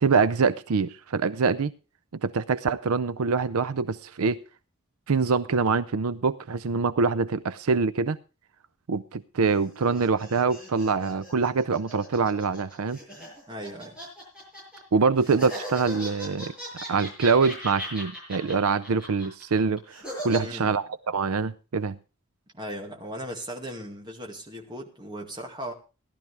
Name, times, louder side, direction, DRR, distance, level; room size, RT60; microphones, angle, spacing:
voice 1, 0.0-1.7 2.2-4.4 5.1-8.2 8.9-13.0 14.9-16.5 16.9-22.0, right 4 dB, 80° right, 14 dB, 0.5 m, -25 dB
sound 1, 9.4-14.8 15.2-20.4, equal, 5° right, 7.2 m, -39 dB
voice 2, 13.5-14.0 20.3-20.8 22.5-25.7, equal, 20° right, 1 dB, 2.2 m, -37 dB
17.0 x 12.0 x 3.4 m, 0.32 s
head